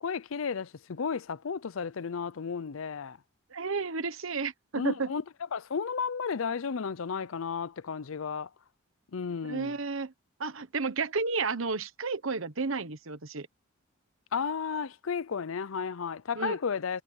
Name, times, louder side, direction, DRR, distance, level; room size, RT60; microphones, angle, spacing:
voice 1, 0.0-3.2 4.7-5.2 5.5-8.5 9.1-9.7 14.3-17.0, left 6 dB, 75° left, 0.6 m, -33 dB
voice 2, 3.5-5.1 9.4-10.1 10.4-13.5 16.3-16.6, right 4 dB, 70° right, 1.2 m, -32 dB
head